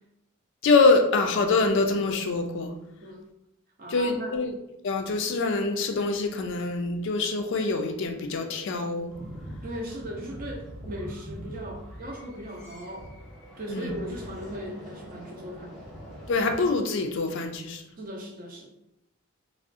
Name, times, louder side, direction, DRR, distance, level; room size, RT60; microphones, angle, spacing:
voice 1, 0.6-2.7 3.9-4.5 4.8-9.1 13.7-13.9 16.3-17.8, left 3 dB, 55° left, 5 dB, 0.3 m, -25 dB
voice 2, 3.8-4.4 9.6-13.1 13.6-15.8 18.0-18.7, equal, 40° right, 0 dB, 0.5 m, -38 dB
sound 1, 9.1-16.7, equal, ahead, 0.9 m, -43 dB
3.6 x 2.0 x 2.5 m, 0.85 s
head